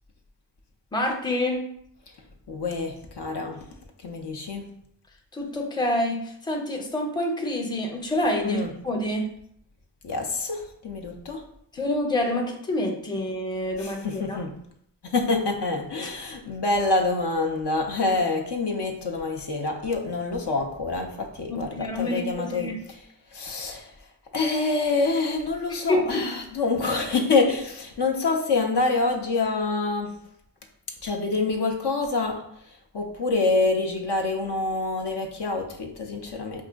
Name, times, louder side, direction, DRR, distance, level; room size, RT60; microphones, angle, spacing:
voice 1, 0.9-1.6 5.3-9.3 11.7-14.4 21.5-22.8 25.7-26.3, left 1 dB, 10° left, 1 dB, 0.5 m, -27 dB
voice 2, 2.5-3.6 4.0-4.6 8.4-8.7 10.0-11.4 13.8-14.5 15.0-22.7 23.3-23.8 24.3-30.1 31.0-32.3 32.9-36.6, left 3 dB, 75° left, 2 dB, 0.6 m, -26 dB
4.6 x 2.5 x 2.2 m, 0.70 s
wide cardioid pair, 55°, 42 cm